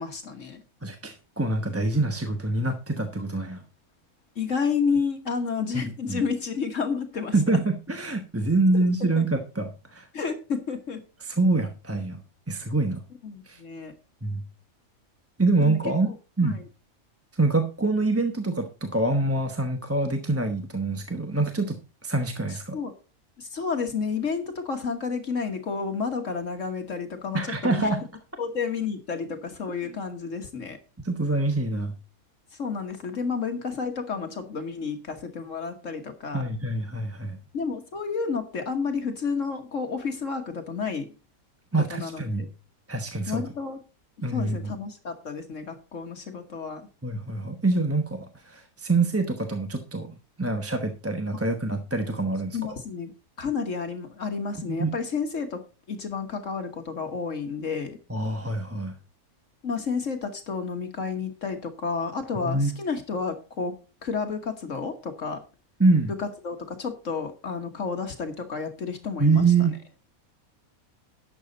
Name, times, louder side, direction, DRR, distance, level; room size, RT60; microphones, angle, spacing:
voice 1, 0.0-0.6 4.3-7.3 8.7-8.8 9.1-9.2 10.1-11.0 13.2-13.9 15.6-15.8 16.1-16.2 16.4-16.6 22.7-22.9 23.4-27.9 28.4-30.8 32.6-36.4 37.5-41.1 41.7-42.5 43.3-43.8 44.3-46.8 52.5-53.1 53.4-55.6 55.9-58.0 59.6-63.7 64.0-65.4 66.2-69.4, left 5 dB, 60° left, 6 dB, 1.7 m, -31 dB
voice 2, 0.8-3.6 5.7-6.3 7.3-10.1 11.2-12.2 12.5-13.0 13.5-13.6 14.2-14.4 15.4-16.1 16.4-16.6 17.4-21.8 22.0-22.8 27.3-28.0 31.0-31.9 36.3-37.4 41.7-42.5 42.9-43.4 44.2-44.7 47.0-50.1 50.4-52.6 54.6-54.9 58.1-58.9 62.4-62.7 65.8-66.1 69.2-69.8, right 3 dB, 10° right, 5 dB, 0.9 m, -25 dB
12.0 x 7.7 x 4.0 m, 0.33 s
omnidirectional pair, 1.5 m